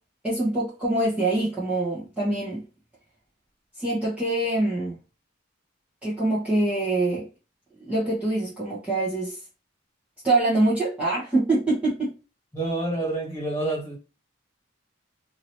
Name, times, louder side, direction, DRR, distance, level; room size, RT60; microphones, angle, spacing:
voice 1, 0.2-2.6 3.8-5.0 6.0-7.3 7.8-9.4 10.2-12.1, right 2 dB, 5° right, 1.1 m, -24 dB
voice 2, 12.5-14.0, right 2 dB, 15° left, 1.9 m, -28 dB
2.9 x 2.7 x 3.0 m
head